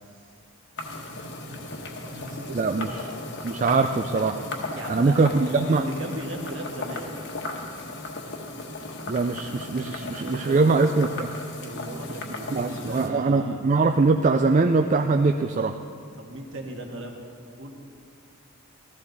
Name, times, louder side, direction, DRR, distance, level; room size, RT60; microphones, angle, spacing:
sound 1, 0.8-13.1, left 2 dB, 50° left, 1.3 m, -36 dB
voice 1, 1.4-2.9 4.7-7.2 9.9-10.8 11.6-13.6 16.1-17.2 17.6-17.8, right 1 dB, 55° right, 1 dB, 1.6 m, -37 dB
voice 2, 2.5-2.9 3.4-4.4 4.9-5.8 9.1-11.3 12.5-15.8, right 3 dB, 35° right, 6 dB, 0.3 m, -22 dB
14.5 x 14.5 x 4.0 m, 2.3 s
head